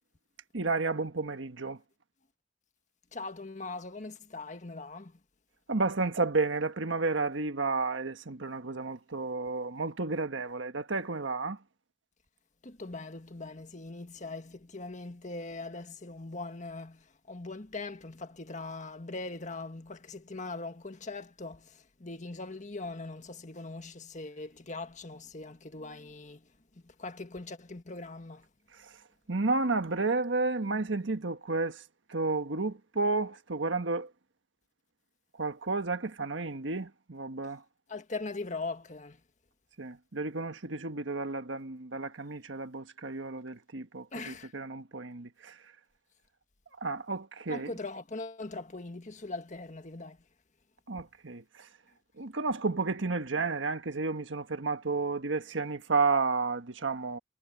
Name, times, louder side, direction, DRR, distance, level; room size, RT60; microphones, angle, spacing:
voice 1, 0.5-1.8 5.7-11.6 28.8-28.9 29.3-31.8 32.1-34.1 35.4-37.6 39.8-45.6 46.8-47.8 50.9-51.7 52.2-57.2, right 3 dB, 85° right, 1.4 m, -32 dB
voice 2, 3.1-5.2 12.6-28.5 37.9-39.2 44.1-44.5 47.5-50.2, left 3 dB, 40° left, 1.7 m, -41 dB
head